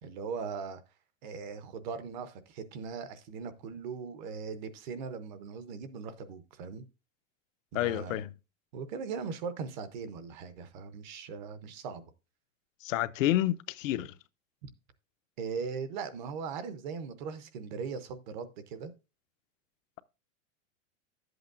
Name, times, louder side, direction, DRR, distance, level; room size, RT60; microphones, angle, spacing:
voice 1, 0.0-0.8 1.2-6.8 7.7-8.2 8.7-12.1 14.6-14.7 15.4-18.9, right 5 dB, 35° right, 0.7 m, -39 dB
voice 2, 7.7-8.3 12.8-14.1, left 14 dB, 80° left, 0.7 m, -29 dB
11.0 x 7.9 x 2.5 m
supercardioid pair, 180°, 39 cm